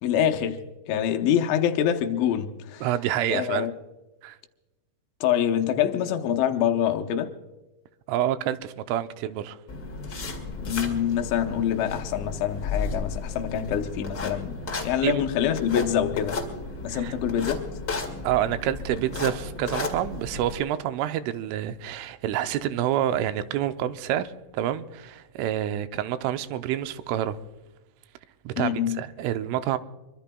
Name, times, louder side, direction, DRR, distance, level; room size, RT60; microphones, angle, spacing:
voice 1, 0.0-0.6 0.9-2.9 3.3-3.7 5.2-7.3 10.6-16.4 16.8-17.6 28.5-29.0, left 9 dB, 80° left, 3.2 m, -25 dB
voice 2, 2.8-3.7 4.2-4.4 8.1-9.6 15.0-15.2 16.9-17.1 18.2-27.4 28.5-29.8, right 11 dB, 85° right, 3.2 m, -28 dB
sound 1, 9.7-20.5, left 3 dB, 40° left, 1.5 m, -34 dB
24.0 x 24.0 x 2.3 m
omnidirectional pair, 5.6 m